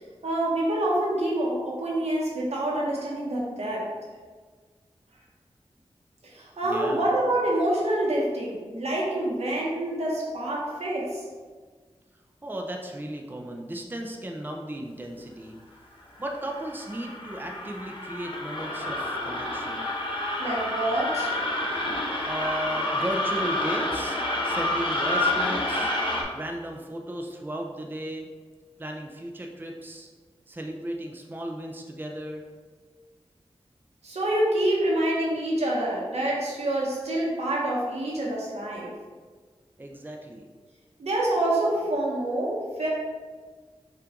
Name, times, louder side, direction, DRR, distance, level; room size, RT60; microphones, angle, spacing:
voice 1, 0.2-3.9 6.2-11.2 20.4-21.3 34.0-38.9 41.0-42.9, right 1 dB, 80° right, -4 dB, 1.2 m, -26 dB
voice 2, 6.6-7.0 12.4-15.6 16.2-19.8 22.2-25.9 26.3-28.3 28.8-30.1 30.5-32.4 39.8-40.5, right 1 dB, 20° right, 1 dB, 0.5 m, -35 dB
sound 1, 16.2-26.2, left 1 dB, 50° left, 1.0 m, -29 dB
5.7 x 2.5 x 3.7 m, 1.5 s
cardioid pair, 50°, 11 cm